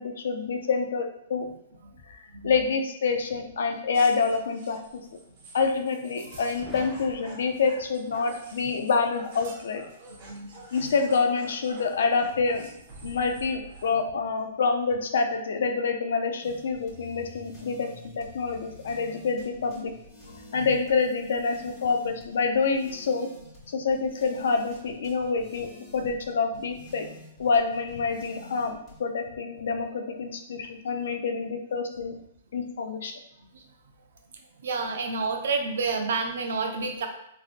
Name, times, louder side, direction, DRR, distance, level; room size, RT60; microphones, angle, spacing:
voice 1, 0.0-1.5 2.1-2.2 2.4-5.0 5.5-9.8 10.7-12.7 13.0-19.9 20.5-23.3 23.7-27.1 27.4-32.2 32.5-33.1, left 4 dB, 75° left, 6 dB, 0.4 m, -27 dB
voice 2, 2.3-2.7 8.6-8.7 10.2-10.9 13.0-13.1 17.8-17.9 20.5-20.8 22.0-22.1 33.5-33.6 34.6-37.1, right 4 dB, 75° right, 4 dB, 0.5 m, -30 dB
sound 1, 3.9-14.0, right 2 dB, 45° right, 1.0 m, -48 dB
sound 2, 6.5-8.5, equal, ahead, 0.5 m, -47 dB
sound 3, 16.4-29.0, left 1 dB, 20° left, 1.0 m, -49 dB
3.2 x 2.6 x 2.4 m, 0.76 s
hypercardioid pair, 140°, 0 cm